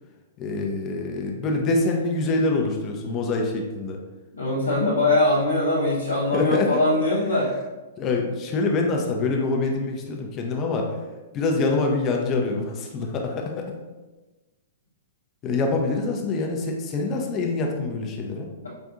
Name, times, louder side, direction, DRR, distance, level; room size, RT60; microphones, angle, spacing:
voice 1, 0.4-4.0 6.3-6.8 8.0-11.0 11.3-13.7 15.4-18.5, left 3 dB, 30° left, 1 dB, 0.6 m, -25 dB
voice 2, 4.4-7.5, left 2 dB, 90° left, -8 dB, 0.8 m, -21 dB
4.9 x 2.6 x 2.4 m, 1.2 s
hypercardioid pair, 115°, 0 cm